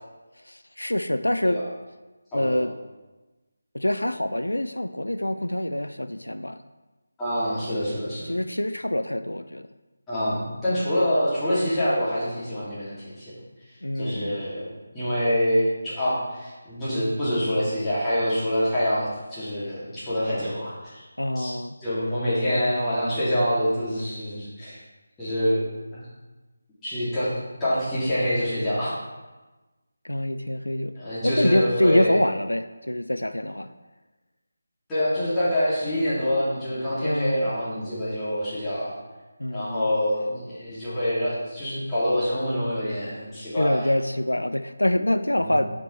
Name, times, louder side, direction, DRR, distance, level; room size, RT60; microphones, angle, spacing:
voice 1, 0.5-1.6 2.3-2.7 3.7-6.6 8.3-9.7 13.8-14.4 21.2-21.8 30.0-31.0 31.2-33.7 37.0-37.5 39.4-39.9 43.6-45.7, left 1 dB, 90° left, 10 dB, 0.3 m, -25 dB
voice 2, 7.2-8.3 10.1-13.3 13.9-14.7 14.9-21.0 21.3-21.5 21.8-24.8 25.2-25.6 25.9-26.0 26.8-27.3 27.6-28.9 31.0-32.1 34.9-38.9 39.5-43.8 45.4-45.5, equal, 10° left, -13 dB, 2.5 m, -26 dB
9.0 x 5.2 x 3.2 m, 1.2 s
figure-of-eight pair, 160°, 0 cm